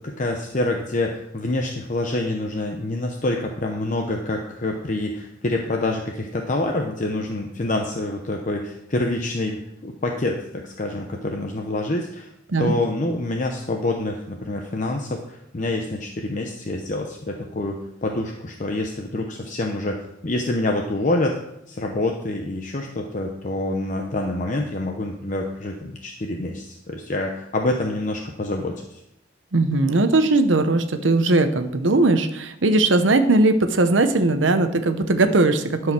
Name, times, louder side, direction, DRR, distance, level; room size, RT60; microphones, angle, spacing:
voice 1, 0.0-12.3 12.6-20.0 20.2-21.3 21.7-29.0, left 2 dB, 45° left, 2 dB, 0.8 m, -26 dB
voice 2, 29.5-35.9, right 2 dB, 85° right, 8 dB, 0.9 m, -19 dB
11.5 x 4.9 x 6.0 m, 0.82 s
head